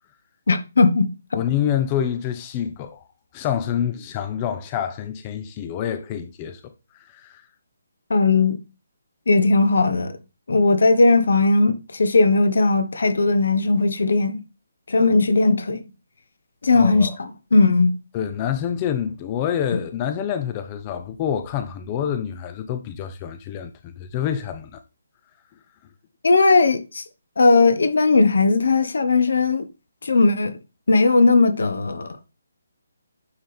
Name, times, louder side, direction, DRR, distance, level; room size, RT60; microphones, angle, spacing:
voice 1, 0.5-1.1 8.1-8.6 9.3-10.2 10.5-14.4 14.9-15.8 16.6-18.0 26.2-27.0 27.4-29.7 30.0-30.6 30.9-32.1, left 3 dB, 70° left, 1.1 m, -18 dB
voice 2, 1.3-3.1 3.3-7.5 16.7-17.2 18.1-24.8, left 9 dB, 25° left, 0.5 m, -27 dB
9.4 x 3.4 x 4.3 m
hypercardioid pair, 160°, 0 cm